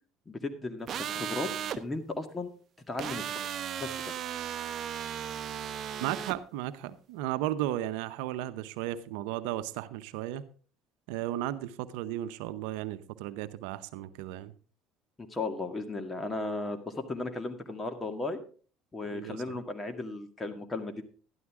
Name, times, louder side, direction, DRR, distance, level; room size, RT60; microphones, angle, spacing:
voice 1, 0.3-1.5 1.8-2.5 2.9-3.5 3.8-4.1 15.2-18.4 18.9-21.0, left 2 dB, 20° left, 7 dB, 1.9 m, -35 dB
sound 1, 0.9-1.8 3.0-6.4, right 9 dB, 50° right, 0.9 m, -36 dB
voice 2, 6.0-10.4 11.1-14.5 19.0-19.6, right 13 dB, 80° right, 12 dB, 0.7 m, -35 dB
12.5 x 11.0 x 3.6 m, 0.40 s
supercardioid pair, 90°, 0 cm